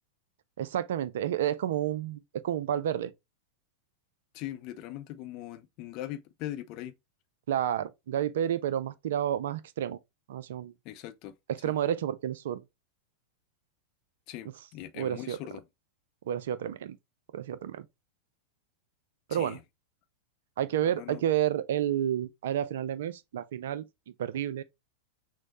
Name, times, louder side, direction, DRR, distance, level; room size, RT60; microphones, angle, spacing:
voice 1, 0.6-3.1 7.5-10.0 10.3-10.7 11.5-12.6 14.9-15.4 16.3-17.0 17.3-17.9 19.3-19.6 20.6-23.8 24.2-24.6, right 10 dB, 60° right, 0.4 m, -30 dB
voice 2, 4.3-6.9 10.8-11.3 11.6-11.7 14.3-15.6 19.3-19.6 20.8-21.2, left 13 dB, 40° left, 0.5 m, -40 dB
6.1 x 2.1 x 2.9 m
figure-of-eight pair, 90°, 0 cm